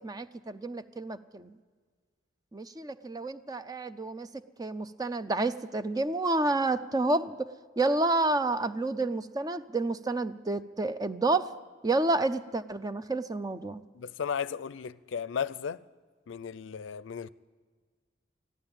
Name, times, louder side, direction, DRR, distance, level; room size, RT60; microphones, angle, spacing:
voice 1, 0.0-1.5 2.5-4.3 4.6-7.5 7.8-11.5 11.8-13.8, right 2 dB, 20° right, 0.5 m, -29 dB
voice 2, 13.9-15.8 16.3-17.3, left 7 dB, 75° left, 0.4 m, -35 dB
14.0 x 12.0 x 8.9 m
head